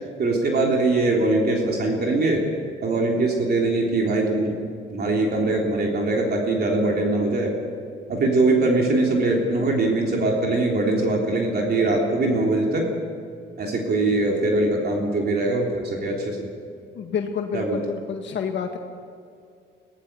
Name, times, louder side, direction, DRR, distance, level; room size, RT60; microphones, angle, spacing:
voice 1, 0.2-2.5 2.8-4.6 4.9-7.5 8.1-12.9 13.6-16.5 17.5-17.8, right 2 dB, 50° right, -1 dB, 3.4 m, -22 dB
voice 2, 16.9-18.8, left 7 dB, 65° left, 3 dB, 1.7 m, -29 dB
22.0 x 18.0 x 6.8 m, 2.3 s
cardioid pair, 90°, 20 cm